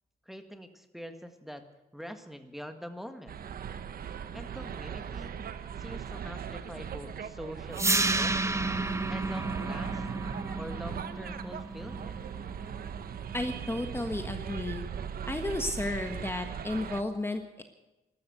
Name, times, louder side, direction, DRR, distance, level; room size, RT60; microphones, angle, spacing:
voice 1, 0.2-1.7 1.9-3.4 4.3-5.4 5.8-8.7 9.1-10.0 10.6-12.2, equal, ahead, 6 dB, 1.7 m, -44 dB
sound 1, 3.3-17.0, right 8 dB, 65° right, 1.0 m, -39 dB
sound 2, 7.7-13.8, right 2 dB, 15° right, 0.9 m, -32 dB
voice 2, 13.3-14.8 15.3-17.6, left 2 dB, 15° left, 5 dB, 1.4 m, -33 dB
13.5 x 13.0 x 8.0 m, 1.0 s
cardioid pair, 70°, 16 cm